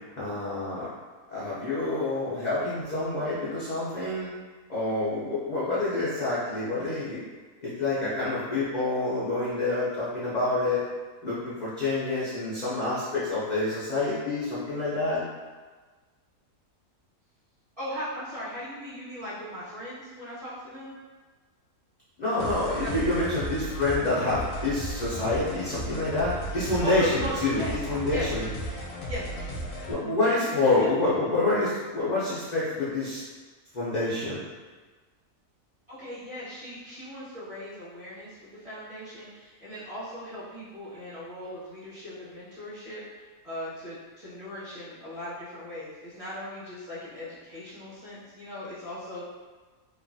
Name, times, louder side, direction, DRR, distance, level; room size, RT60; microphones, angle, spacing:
voice 1, 0.2-0.9 1.3-4.3 4.7-7.2 7.6-10.8 11.2-15.2 22.2-28.5 29.9-33.2 33.7-34.4, left 2 dB, 70° left, -10 dB, 0.4 m, -27 dB
voice 2, 17.8-20.9 22.7-23.0 26.8-27.8 28.1-28.3 29.0-29.3 30.2-30.5 30.8-30.9 35.9-38.4 38.6-49.2, left 1 dB, 30° right, -12 dB, 0.8 m, -38 dB
sound 1, 22.4-29.9, equal, 85° left, 1.1 m, -35 dB
3.1 x 2.3 x 2.5 m, 1.4 s
omnidirectional pair, 1.6 m